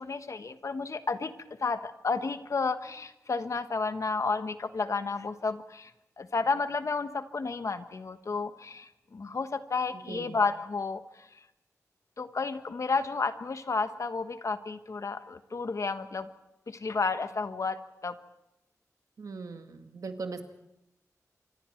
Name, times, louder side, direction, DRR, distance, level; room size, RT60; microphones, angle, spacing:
voice 1, 0.0-5.9 6.2-11.4 12.2-16.3 16.7-18.2, left 4 dB, 60° left, 10 dB, 1.3 m, -32 dB
voice 2, 19.2-20.4, right 4 dB, 80° right, 6 dB, 2.0 m, -39 dB
27.0 x 24.5 x 4.6 m, 0.88 s
wide cardioid pair, 75°, 6 cm